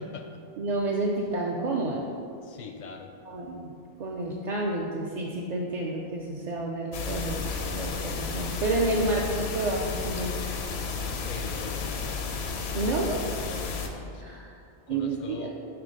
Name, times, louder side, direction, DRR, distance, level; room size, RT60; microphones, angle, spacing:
voice 1, 0.0-0.4 2.4-3.2 11.2-12.2 13.3-14.4 14.9-15.5, left 4 dB, 55° left, 4 dB, 0.5 m, -42 dB
voice 2, 0.6-2.0 3.3-3.7 4.0-10.5 12.7-13.3 14.2-14.5 14.9-15.5, right 2 dB, 55° right, -2 dB, 0.5 m, -30 dB
sound 1, 6.9-13.9, left 5 dB, 80° left, 0.9 m, -32 dB
5.9 x 3.2 x 5.1 m, 2.4 s
omnidirectional pair, 1.1 m